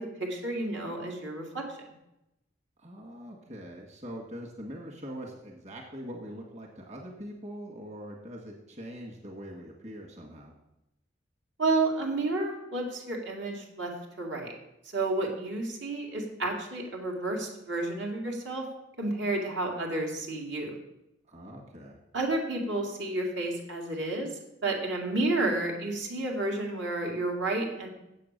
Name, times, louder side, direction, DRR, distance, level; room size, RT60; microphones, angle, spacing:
voice 1, 0.0-1.6 11.6-13.9 14.2-14.5 14.9-18.7 19.0-20.7 22.1-27.9, right 2 dB, 75° right, 0 dB, 2.3 m, -31 dB
voice 2, 2.8-10.5 21.3-22.0, equal, 40° right, -1 dB, 1.9 m, -43 dB
8.5 x 7.8 x 6.7 m, 0.88 s
head